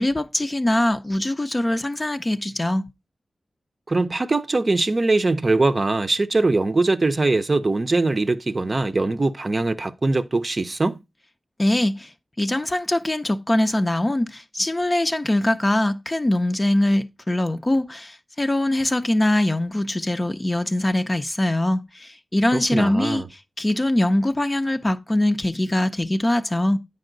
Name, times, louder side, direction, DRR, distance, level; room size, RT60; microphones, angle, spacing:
voice 1, 0.0-2.8 11.6-12.1 12.4-23.2 23.6-26.8, left 1 dB, 25° left, 0.6 m, -22 dB
voice 2, 3.9-11.0 22.5-23.3, right 2 dB, 40° right, 0.6 m, -22 dB
9.1 x 5.4 x 3.8 m
wide cardioid pair, 100°, 0 cm